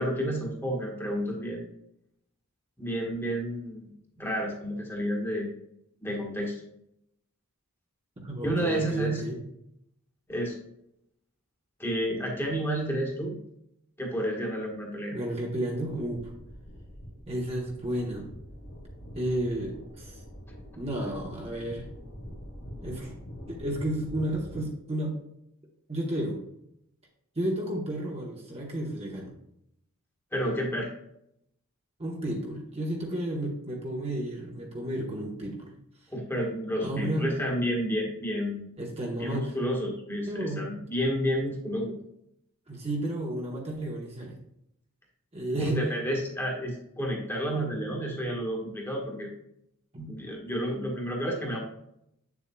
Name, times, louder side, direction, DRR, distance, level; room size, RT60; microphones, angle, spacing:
voice 1, 0.0-1.7 2.8-5.5 6.0-6.6 8.4-9.2 10.3-10.6 11.8-13.4 14.0-15.2 30.3-30.9 36.1-38.7 39.2-41.9 45.6-49.3 50.1-51.6, equal, 10° left, -1 dB, 1.4 m, -30 dB
voice 2, 8.2-9.4 15.1-16.3 17.3-18.3 19.2-20.2 20.8-21.9 22.8-23.1 23.5-25.2 25.9-26.4 27.4-29.3 32.0-35.7 36.8-37.4 38.8-39.5 40.3-40.8 42.7-44.4 45.3-45.8 49.9-50.2, right 1 dB, 30° right, -1 dB, 1.0 m, -32 dB
sound 1, 16.0-24.6, equal, 80° left, 1.8 m, -44 dB
8.0 x 7.1 x 2.3 m, 0.76 s
head